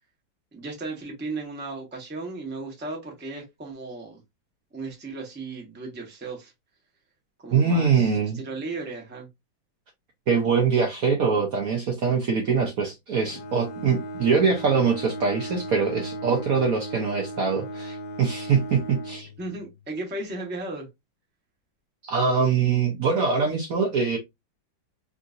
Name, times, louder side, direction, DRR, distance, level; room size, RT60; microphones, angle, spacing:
voice 1, 0.5-4.2 4.7-6.5 7.4-9.3 19.4-20.9, right 3 dB, 10° right, 0.5 m, -35 dB
voice 2, 7.5-8.4 10.3-19.3 22.0-24.2, right 5 dB, 65° right, 0.9 m, -23 dB
Bowed string instrument, 13.2-19.9, right 1 dB, 80° left, 0.8 m, -37 dB
3.7 x 2.6 x 2.4 m
omnidirectional pair, 2.1 m